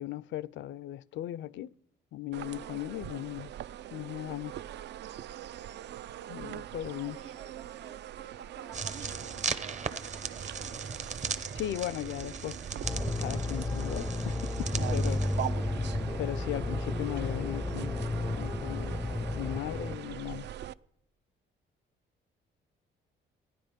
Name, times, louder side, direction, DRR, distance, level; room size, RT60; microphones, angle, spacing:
voice 1, 0.0-1.7 2.1-3.5 3.9-4.5 6.3-7.2 11.5-12.6 13.2-15.3 16.2-18.1 18.4-19.0 19.3-20.5, left 13 dB, 70° left, 0.4 m, -37 dB
sound 1, 2.3-20.7, right 11 dB, 60° right, 0.4 m, -42 dB
voice 2, 6.9-10.6, right 7 dB, 80° right, 1.2 m, -52 dB
sound 2, 8.7-15.5, right 5 dB, 35° right, 0.8 m, -38 dB
sound 3, 12.8-20.0, left 2 dB, 5° left, 0.4 m, -33 dB
15.0 x 10.0 x 5.1 m
cardioid pair, 90°, 20 cm